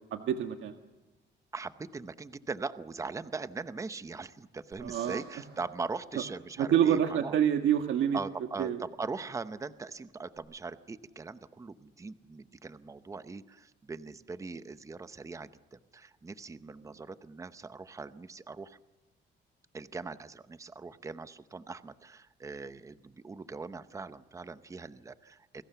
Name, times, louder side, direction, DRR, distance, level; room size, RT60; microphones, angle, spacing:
voice 1, 0.1-0.7 4.8-5.2 6.6-8.2 8.6-8.8, right 9 dB, 75° right, 6 dB, 1.6 m, -27 dB
voice 2, 1.5-7.4 8.1-18.8 19.7-25.6, right 4 dB, 15° right, 12 dB, 0.8 m, -41 dB
sound 1, 4.7-7.0 10.4-10.5, right 5 dB, 55° right, 7.5 m, -57 dB
29.5 x 21.0 x 6.9 m, 1.1 s
cardioid pair, 170°, 20 cm